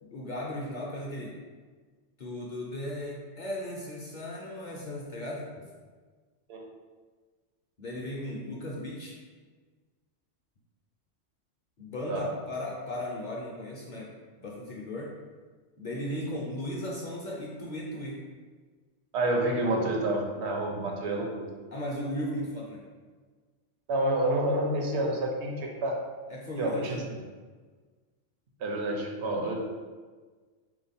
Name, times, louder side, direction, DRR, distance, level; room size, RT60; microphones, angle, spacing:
voice 1, 0.0-1.4 2.2-5.7 7.8-9.1 11.8-14.1 14.4-15.1 15.8-18.2 21.7-22.8 26.3-27.1, left 1 dB, 50° left, -3 dB, 0.6 m, -36 dB
voice 2, 19.1-21.5 23.9-26.0 26.6-27.0 28.6-29.6, right 1 dB, 70° right, 0 dB, 0.9 m, -28 dB
3.7 x 2.9 x 4.1 m, 1.5 s
omnidirectional pair, 1.2 m